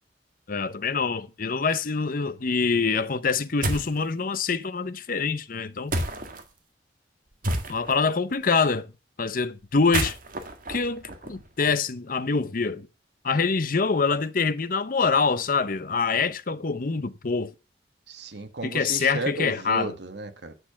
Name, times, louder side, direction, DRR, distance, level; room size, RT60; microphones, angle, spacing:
voice 1, 0.5-5.9 7.7-8.9 9.2-10.2 10.7-12.9 13.2-17.5 18.6-19.9, left 4 dB, 50° left, 0.8 m, -25 dB
sound 1, 3.6-4.0 5.9-6.4 7.4-8.1 9.7-11.7, right 1 dB, 50° right, 1.8 m, -30 dB
voice 2, 18.1-20.5, right 2 dB, 70° right, 1.5 m, -34 dB
9.8 x 6.7 x 5.9 m
head